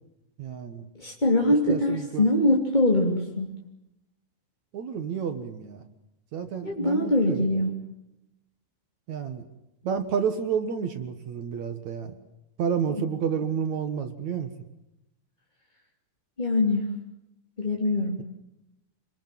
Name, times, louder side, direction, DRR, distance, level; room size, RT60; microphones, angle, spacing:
voice 1, 0.4-0.9 1.7-2.2 4.7-5.8 6.3-7.4 9.1-9.4 9.8-12.1 12.6-14.5, right 7 dB, 55° right, 9 dB, 2.4 m, -30 dB
voice 2, 1.0-3.5 6.6-7.7 16.4-16.9 17.6-18.1, left 1 dB, 15° left, -1 dB, 2.3 m, -23 dB
28.0 x 22.0 x 7.6 m, 0.88 s
omnidirectional pair, 4.5 m